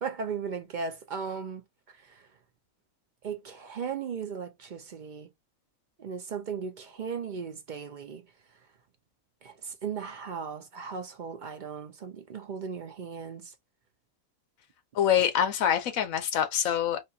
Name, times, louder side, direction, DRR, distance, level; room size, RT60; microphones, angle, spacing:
voice 1, 0.0-1.6 1.9-2.3 3.2-5.3 6.0-8.2 9.4-13.5, right 6 dB, 65° right, 0.4 m, -37 dB
voice 2, 14.9-17.0, left 9 dB, 75° left, 1.2 m, -25 dB
4.2 x 2.4 x 2.7 m
omnidirectional pair, 1.5 m